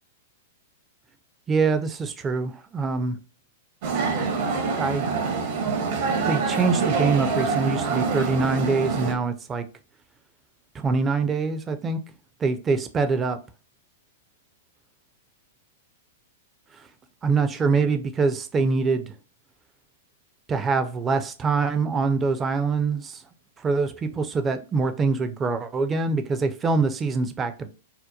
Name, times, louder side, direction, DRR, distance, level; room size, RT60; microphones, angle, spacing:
voice 1, 1.5-3.2 4.8-5.1 6.3-9.6 10.7-12.0 12.4-13.4 17.2-19.1 20.5-23.2 23.6-27.7, right 4 dB, 20° right, 0.4 m, -24 dB
sound 1, 3.8-9.1, right 5 dB, 55° right, 0.7 m, -25 dB
2.8 x 2.1 x 2.2 m
hypercardioid pair, 125°, 0 cm